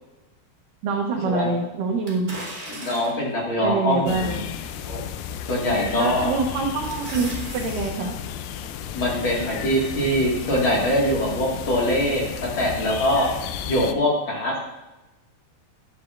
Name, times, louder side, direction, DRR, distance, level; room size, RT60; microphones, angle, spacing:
voice 1, 0.8-2.4 3.6-4.5 5.9-8.2, right 4 dB, 75° right, 1 dB, 2.1 m, -25 dB
sound 1, 2.1-3.3 3.9-4.0 5.6-5.9 6.3-7.9 8.3-8.4, right 1 dB, 15° right, 1.9 m, -37 dB
voice 2, 2.7-4.4 4.8-5.0 5.5-6.3 8.9-12.2 12.6-13.3 13.7-14.6, equal, 45° left, -4 dB, 1.9 m, -23 dB
sound 2, 4.1-13.9, left 8 dB, 80° left, 2.2 m, -33 dB
11.5 x 9.7 x 2.5 m, 1.0 s
omnidirectional pair, 4.6 m